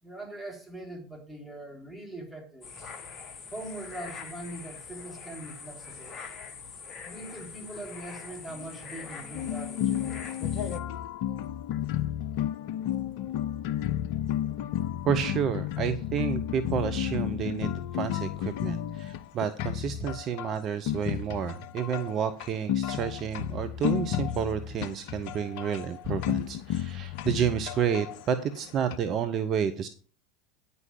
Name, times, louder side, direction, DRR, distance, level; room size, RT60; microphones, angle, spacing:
voice 1, 0.0-2.7 3.5-6.2 7.0-10.2, right 1 dB, ahead, 3.5 m, -42 dB
sound 1, 2.6-10.8, left 5 dB, 35° left, 1.6 m, -42 dB
sound 2, 9.3-29.0, left 11 dB, 55° left, 0.5 m, -32 dB
voice 2, 15.0-29.9, right 8 dB, 40° right, 0.8 m, -30 dB
9.6 x 5.5 x 7.4 m
figure-of-eight pair, 80°, 0 cm